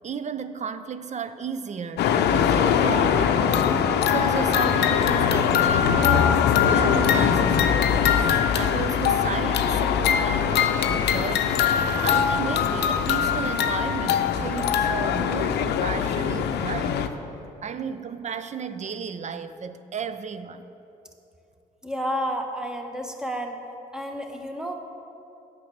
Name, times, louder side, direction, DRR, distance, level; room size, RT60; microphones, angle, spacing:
voice 1, 0.0-3.6 4.1-11.6 12.0-17.1 17.6-20.6, right 6 dB, 40° right, 12 dB, 0.6 m, -33 dB
sound 1, 2.0-17.1, left 8 dB, 70° left, 0.6 m, -22 dB
voice 2, 21.8-23.6 23.9-24.7, equal, 5° right, 3 dB, 1.3 m, -30 dB
9.0 x 6.1 x 6.5 m, 2.8 s
hypercardioid pair, 55°, 18 cm